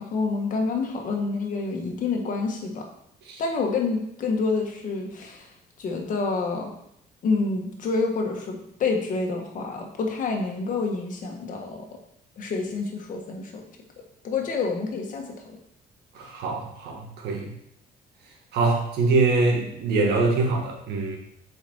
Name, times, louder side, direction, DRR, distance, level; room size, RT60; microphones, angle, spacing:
voice 1, 0.0-2.8 3.4-5.5 5.8-6.7 7.2-11.9 12.4-13.6 14.2-15.6, left 4 dB, 50° left, 1 dB, 1.7 m, -28 dB
voice 2, 16.1-17.5 18.5-21.2, right 3 dB, 80° right, 1 dB, 1.8 m, -24 dB
7.3 x 5.1 x 4.6 m, 0.75 s
cardioid pair, 110°, 17 cm